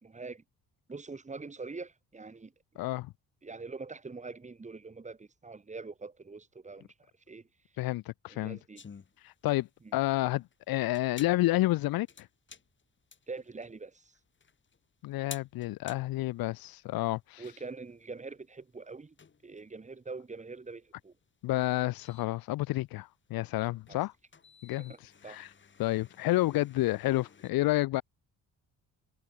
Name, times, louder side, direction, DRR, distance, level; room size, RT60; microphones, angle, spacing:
voice 1, 0.0-0.4 0.9-2.5 3.4-7.5 8.3-8.8 9.8-10.0 13.3-14.1 17.4-19.2 19.4-21.1 23.9-24.0 24.8-25.5, right 4 dB, 20° right, 2.6 m, -44 dB
voice 2, 2.8-3.1 7.8-8.6 9.2-9.7 9.9-12.3 15.0-17.4 21.4-24.1 24.6-24.9 25.3-25.5 25.8-28.0, left 17 dB, 85° left, 0.7 m, -30 dB
sound 1, 8.8-27.5, left 6 dB, 35° left, 4.4 m, -55 dB
cardioid pair, 130°, 35 cm